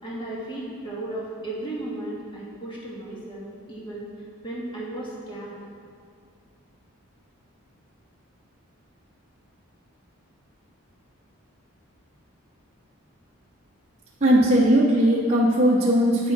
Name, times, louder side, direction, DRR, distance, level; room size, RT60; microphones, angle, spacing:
voice 1, 0.0-5.6, right 1 dB, 20° left, -5 dB, 1.7 m, -35 dB
voice 2, 14.2-16.3, equal, 30° right, -6 dB, 0.8 m, -19 dB
9.0 x 6.8 x 4.6 m, 2.3 s
head